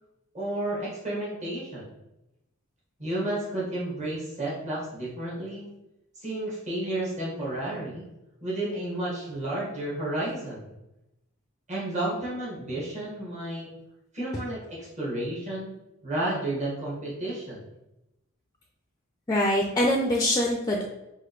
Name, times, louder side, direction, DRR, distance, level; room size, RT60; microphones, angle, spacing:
voice 1, 0.3-1.9 3.0-5.7 6.2-8.0 8.4-10.7 11.7-13.7 14.1-15.7 16.0-17.6, right 1 dB, 35° right, -7 dB, 1.6 m, -32 dB
voice 2, 19.3-20.9, left 1 dB, 20° left, 0 dB, 0.4 m, -24 dB
5.8 x 2.6 x 3.1 m, 0.93 s
head